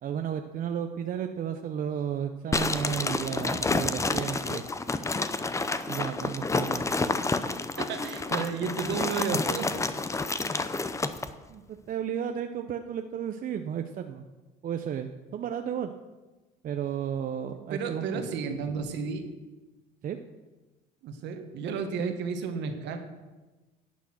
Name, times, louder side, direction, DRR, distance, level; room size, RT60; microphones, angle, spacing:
voice 1, 0.0-4.6 5.9-6.8 11.5-14.2 14.6-15.9 16.6-18.3 20.0-20.2 22.0-22.1, right 8 dB, 50° right, 7 dB, 0.7 m, -33 dB
sound 1, 2.5-11.3, left 3 dB, 15° left, 0.7 m, -29 dB
voice 2, 7.8-9.9 17.7-19.3 21.0-23.0, right 5 dB, 70° right, 6 dB, 1.6 m, -32 dB
11.5 x 8.4 x 6.2 m, 1.2 s
cardioid pair, 95°, 19 cm